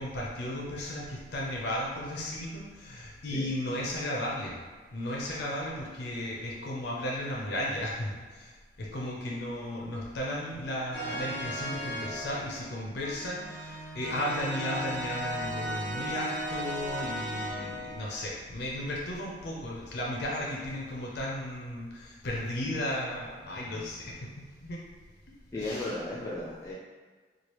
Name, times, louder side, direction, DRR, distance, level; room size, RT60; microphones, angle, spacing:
voice 1, 0.0-4.6 4.9-24.8 25.5-25.9, left 1 dB, 65° left, -3 dB, 0.5 m, -35 dB
sound 1, 10.9-18.2, equal, 15° right, 0.9 m, -36 dB
voice 2, 25.5-26.7, left 2 dB, 20° left, -8 dB, 0.4 m, -35 dB
3.1 x 2.4 x 2.9 m, 1.4 s
head